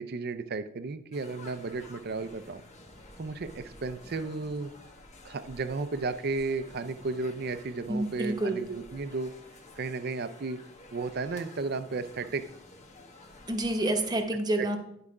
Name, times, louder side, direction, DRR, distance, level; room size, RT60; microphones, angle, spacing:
voice 1, 0.0-2.6 3.2-4.7 5.2-9.3 9.8-10.6 10.9-12.4 14.6-14.7, right 3 dB, 50° right, 11 dB, 0.5 m, -34 dB
sound 1, 1.1-14.2, left 2 dB, 35° left, 1.1 m, -51 dB
voice 2, 7.9-8.7 13.5-14.8, right 1 dB, 20° right, 4 dB, 0.9 m, -28 dB
10.5 x 4.9 x 4.8 m, 0.74 s
head